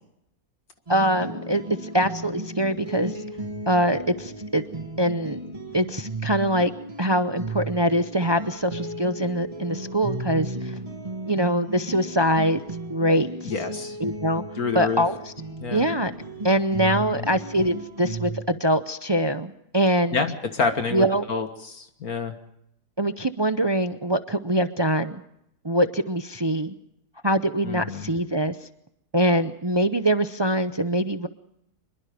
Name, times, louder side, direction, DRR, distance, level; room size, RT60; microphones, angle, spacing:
sound 1, 0.9-18.4, right 2 dB, 20° right, 2.3 m, -35 dB
voice 1, 0.9-3.1 3.7-5.4 5.7-6.7 7.0-10.8 11.3-12.6 12.9-13.5 14.0-14.4 14.7-15.2 15.7-16.1 16.4-20.2 20.9-21.2 23.0-25.2 25.6-26.7 27.2-28.6 29.1-31.3, equal, 35° right, 10 dB, 0.4 m, -23 dB
voice 2, 13.4-14.0 14.6-15.0 15.6-15.9 17.1-17.3 20.1-22.3 27.6-28.1, left 4 dB, 65° left, 7 dB, 2.0 m, -28 dB
25.5 x 22.5 x 5.1 m, 0.78 s
omnidirectional pair, 1.7 m